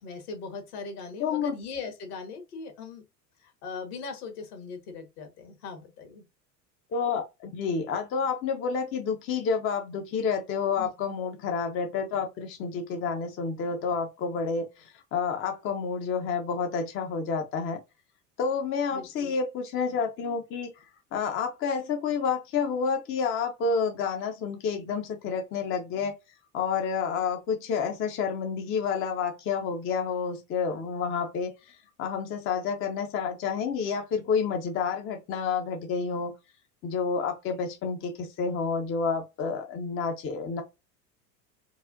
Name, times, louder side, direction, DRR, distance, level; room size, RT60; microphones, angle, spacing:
voice 1, 0.0-3.0 3.4-6.2 10.8-11.2 18.9-19.4, left 4 dB, 60° left, 1.6 m, -40 dB
voice 2, 1.2-1.6 6.9-17.8 18.4-20.8 21.1-26.2 26.5-36.3 36.8-40.6, left 5 dB, 25° left, 0.6 m, -29 dB
4.7 x 2.4 x 2.6 m
figure-of-eight pair, 80°, 50 cm